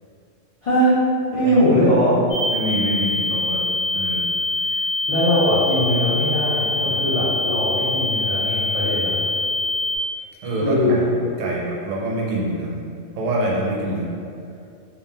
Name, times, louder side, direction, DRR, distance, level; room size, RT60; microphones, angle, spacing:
voice 1, 0.6-0.9 1.3-2.2 5.1-9.1 10.6-11.1 13.8-13.9, equal, 60° left, -11 dB, 0.3 m, -20 dB
voice 2, 1.4-1.8 2.5-3.6 3.9-4.3 4.6-4.9 6.8-7.0 10.4-11.1 11.4-12.8 13.2-14.1, right 1 dB, 80° right, -4 dB, 0.9 m, -26 dB
sound 1, 2.3-10.0, left 2 dB, 45° left, 0.7 m, -24 dB
2.3 x 2.0 x 3.3 m, 2.4 s
omnidirectional pair, 1.3 m